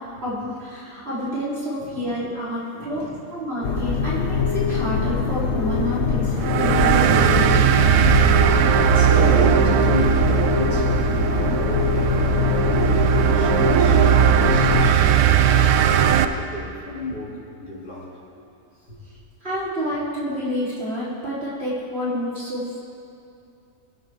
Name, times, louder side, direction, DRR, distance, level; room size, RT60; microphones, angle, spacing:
voice 1, 0.2-3.0 3.3-7.7 19.4-22.8, equal, 40° right, -9 dB, 4.2 m, -28 dB
voice 2, 1.8-2.1 2.7-3.2 8.8-18.1 18.9-19.0, left 2 dB, 80° left, -6 dB, 3.8 m, -33 dB
sound 1, 3.6-14.9, left 5 dB, 50° left, 1.1 m, -23 dB
sound 2, 6.4-16.2, right 9 dB, 75° right, 1.1 m, -18 dB
22.0 x 12.0 x 3.7 m, 2.6 s
omnidirectional pair, 1.7 m